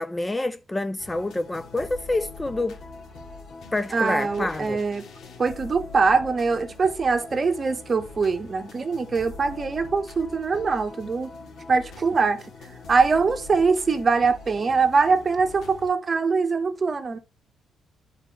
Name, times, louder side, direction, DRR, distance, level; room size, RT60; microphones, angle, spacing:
voice 1, 0.0-2.8 3.7-4.8, left 2 dB, 15° left, 0.4 m, -27 dB
sound 1, 1.0-15.9, left 3 dB, 75° left, 2.3 m, -43 dB
voice 2, 3.9-5.0 5.4-11.3 11.7-12.5 12.9-17.2, right 4 dB, 35° right, 1.1 m, -23 dB
9.8 x 4.3 x 4.6 m
cardioid pair, 105°, 0 cm